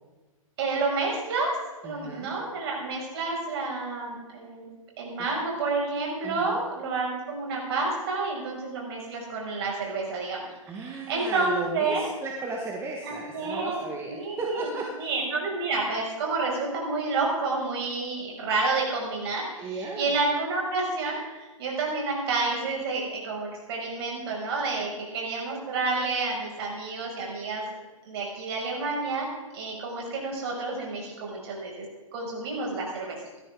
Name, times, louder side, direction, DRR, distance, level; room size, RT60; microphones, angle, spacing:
voice 1, 0.6-1.5 1.8-4.7 5.0-10.4 10.7-12.0 13.0-14.7 15.0-27.7 28.1-29.3 29.5-31.9 32.1-33.2, right 3 dB, 45° right, -2 dB, 5.8 m, -29 dB
voice 2, 1.8-2.3 6.2-6.6 10.7-15.1 19.6-20.1, right 3 dB, 15° right, 0 dB, 1.4 m, -35 dB
17.5 x 13.0 x 3.6 m, 1.2 s
figure-of-eight pair, 125°, 18 cm